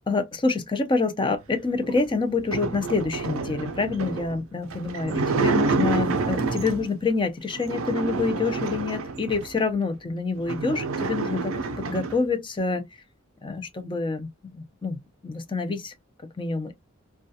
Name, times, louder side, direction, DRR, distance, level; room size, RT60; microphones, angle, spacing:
voice 1, 0.1-12.8 13.4-15.9 16.4-16.7, left 4 dB, 25° left, 0.4 m, -27 dB
sound 1, 1.8-7.0 7.5-9.6 10.1-10.2 10.4-12.2, right 4 dB, 80° right, 0.4 m, -28 dB
2.3 x 2.2 x 2.7 m
head